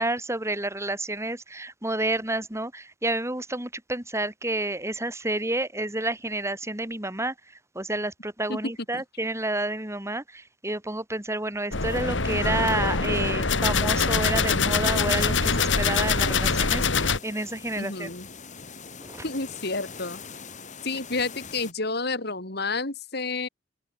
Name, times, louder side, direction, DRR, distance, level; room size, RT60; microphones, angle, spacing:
voice 1, 0.0-7.3 7.8-18.1 19.0-19.2, right 2 dB, 15° right, 3.6 m, -30 dB
sound 1, 11.7-17.2, left 4 dB, 80° left, 2.3 m, -24 dB
sound 2, 14.7-21.7, left 5 dB, 40° left, 7.8 m, -43 dB
voice 2, 17.8-18.3 19.2-20.2 20.8-23.5, left 3 dB, 60° left, 4.0 m, -30 dB
open air
head